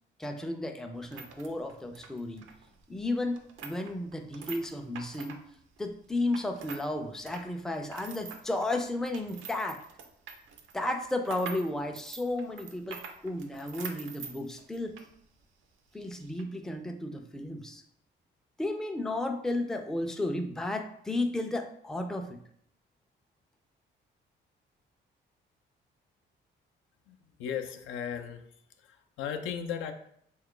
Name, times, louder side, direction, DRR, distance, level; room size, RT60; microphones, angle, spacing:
voice 1, 0.2-2.4 2.9-5.4 5.8-9.8 10.7-14.9 15.9-17.8 18.6-22.4, left 2 dB, 5° left, 5 dB, 0.3 m, -33 dB
sound 1, 0.9-6.9 7.2-15.1 15.4-15.5 16.2-16.4, right 6 dB, 75° right, 0.5 m, -46 dB
voice 2, 27.1-28.4 28.8-29.9, left 8 dB, 85° left, 6 dB, 0.4 m, -36 dB
3.1 x 2.3 x 3.6 m, 0.68 s
cardioid pair, 90°, 20 cm